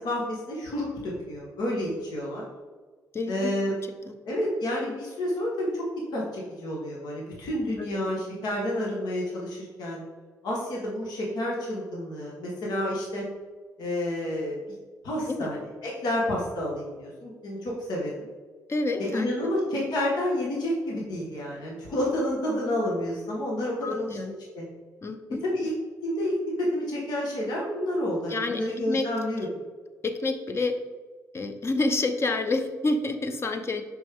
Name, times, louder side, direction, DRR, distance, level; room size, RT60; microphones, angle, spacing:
voice 1, 0.0-2.5 3.3-3.7 4.2-5.8 6.1-10.0 10.4-13.2 13.8-14.6 15.0-15.6 15.8-18.2 19.0-24.2 24.5-24.7 25.4-25.7 26.0-29.5, left 1 dB, 75° left, -4 dB, 1.4 m, -29 dB
voice 2, 3.1-3.8 4.1-4.2 7.8-8.0 15.3-15.5 18.7-19.5 23.8-24.3 25.0-25.4 28.3-29.1 30.0-30.8 31.3-33.8, left 2 dB, 40° left, 6 dB, 0.8 m, -28 dB
6.2 x 5.4 x 3.6 m, 1.4 s
supercardioid pair, 70°, 7 cm